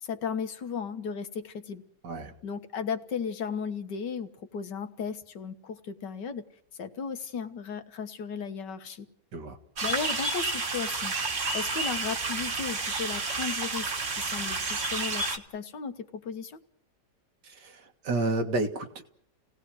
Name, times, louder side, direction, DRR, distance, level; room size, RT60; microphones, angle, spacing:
voice 1, 0.0-1.8 2.4-6.4 6.8-9.1 9.8-11.1 11.5-16.6, left 6 dB, 85° left, 8 dB, 2.0 m, -35 dB
sound 1, 9.8-15.4, right 3 dB, 45° right, 1.9 m, -30 dB
voice 2, 17.4-19.0, right 2 dB, 75° right, 5 dB, 2.4 m, -31 dB
29.5 x 18.0 x 6.3 m, 0.68 s
omnidirectional pair, 1.8 m